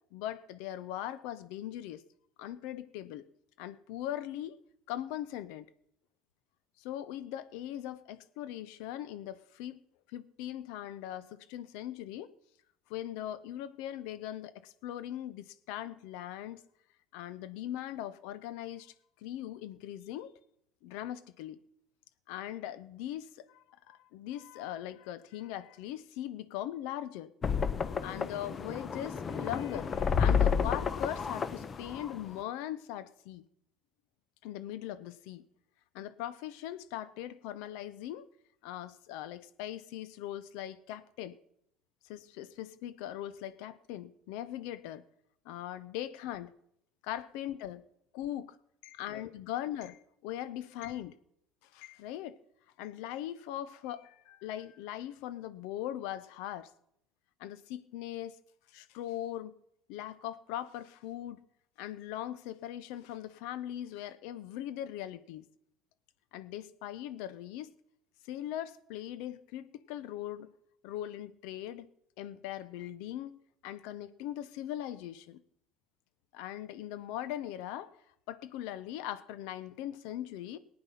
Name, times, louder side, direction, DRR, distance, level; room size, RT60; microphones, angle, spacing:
voice 1, 0.1-2.0 2.4-3.3 3.6-4.6 4.9-5.7 6.8-9.8 10.1-12.3 12.9-16.6 17.1-18.9 19.2-20.3 20.8-21.6 22.3-27.3 28.0-33.4 34.4-35.4 35.9-38.3 38.6-41.4 42.0-45.0 45.4-46.5 47.0-47.8 48.1-48.6 48.8-51.2 51.7-52.4 52.8-56.7 57.4-58.4 58.7-59.6 59.9-61.4 61.8-65.4 66.3-67.7 68.3-70.5 70.8-71.9 72.2-75.4 76.3-78.0 78.3-80.6, left 12 dB, 75° left, 0.8 m, -40 dB
sound 1, 27.4-32.4, left 6 dB, 35° left, 0.9 m, -31 dB
19.0 x 8.9 x 5.7 m
hypercardioid pair, 75°, 0 cm